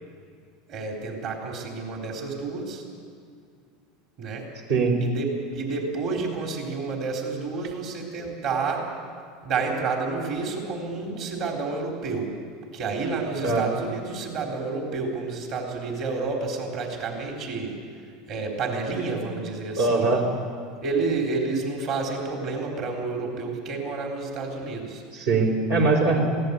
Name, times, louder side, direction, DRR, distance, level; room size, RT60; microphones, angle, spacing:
voice 1, 0.7-2.8 4.2-4.5 5.0-8.9 9.4-12.3 12.7-17.7 18.3-20.1 20.8-25.0 26.2-26.3, right 4 dB, 55° right, 1 dB, 4.2 m, -30 dB
voice 2, 19.8-20.2 25.1-26.3, right 3 dB, 75° right, 0 dB, 4.2 m, -21 dB
22.0 x 17.0 x 8.4 m, 2.2 s
supercardioid pair, 105°, 0 cm